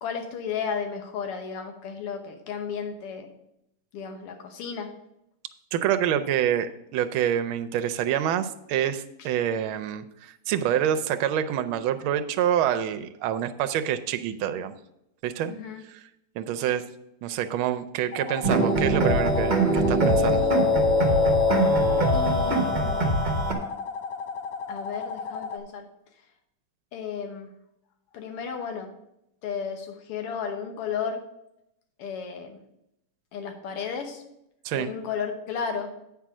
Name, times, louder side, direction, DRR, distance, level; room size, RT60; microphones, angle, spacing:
voice 1, 0.0-3.3 3.9-4.9 9.2-9.3 15.5-15.8 22.1-23.2 24.7-25.9 26.9-27.5 28.1-28.9 29.4-31.2 32.0-32.6 33.3-34.2 34.7-35.9, left 6 dB, 90° left, 5 dB, 2.0 m, -33 dB
voice 2, 5.7-14.7 15.2-15.5 15.9-16.0 16.4-16.8 17.2-20.5 34.6-34.9, right 10 dB, 75° right, 9 dB, 1.4 m, -27 dB
sound 1, 18.1-25.6, left 5 dB, 65° left, 1.4 m, -35 dB
sound 2, 18.4-23.5, equal, 30° right, 0.9 m, -22 dB
8.8 x 4.7 x 6.0 m, 0.82 s
omnidirectional pair, 2.4 m